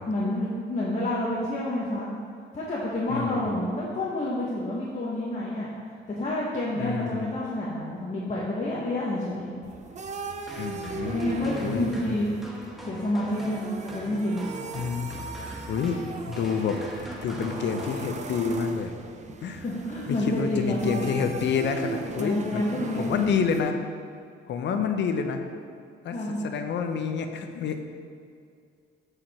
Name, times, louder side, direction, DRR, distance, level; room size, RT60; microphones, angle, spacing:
voice 1, 0.1-2.1 2.5-9.5 11.1-12.3 12.9-14.4 19.2-19.4 19.6-21.1 22.2-23.3 26.1-26.4, left 1 dB, 35° left, -7 dB, 1.3 m, -29 dB
voice 2, 3.1-3.5 6.7-7.3 10.6-11.3 11.6-12.2 14.7-15.1 15.7-16.8 17.2-18.9 19.4-19.8 20.1-22.6 22.9-23.8 24.5-25.4 26.0-27.9, left 6 dB, 65° left, 6 dB, 0.7 m, -28 dB
sound 1, 9.6-23.7, right 4 dB, 35° right, 0.6 m, -38 dB
sound 2, 10.5-18.6, equal, ahead, 1.2 m, -41 dB
7.6 x 5.0 x 4.3 m, 2.3 s
cardioid pair, 90°, 20 cm